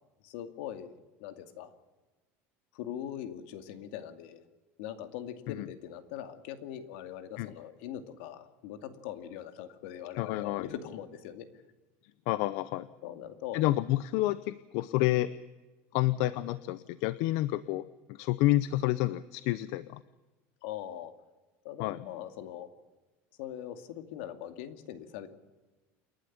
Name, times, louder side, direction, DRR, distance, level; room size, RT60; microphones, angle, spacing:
voice 1, 0.2-0.9 1.2-1.7 2.7-4.4 4.8-11.5 13.0-13.6 20.6-21.1 21.6-22.7 23.4-25.3, left 10 dB, 70° left, 9 dB, 2.4 m, -41 dB
voice 2, 10.2-10.7 12.3-12.9 13.5-15.3 15.9-20.0 21.8-22.0, left 16 dB, 55° left, 16 dB, 0.7 m, -29 dB
29.0 x 11.5 x 9.9 m, 1.2 s
cardioid pair, 175°, 6 cm